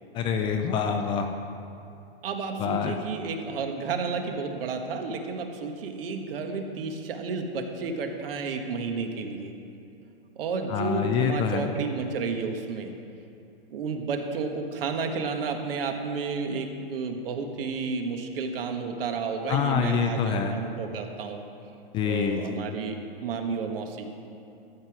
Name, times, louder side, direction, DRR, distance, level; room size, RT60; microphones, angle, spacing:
voice 1, 0.1-1.3 2.6-3.0 10.7-11.7 19.5-20.6 21.9-22.7, left 7 dB, 15° left, 5 dB, 0.4 m, -26 dB
voice 2, 2.2-9.5 10.4-12.9 13.7-21.4 22.0-24.1, right 4 dB, 65° right, 5 dB, 1.5 m, -31 dB
13.5 x 8.0 x 4.8 m, 2.7 s
hypercardioid pair, 135°, 30 cm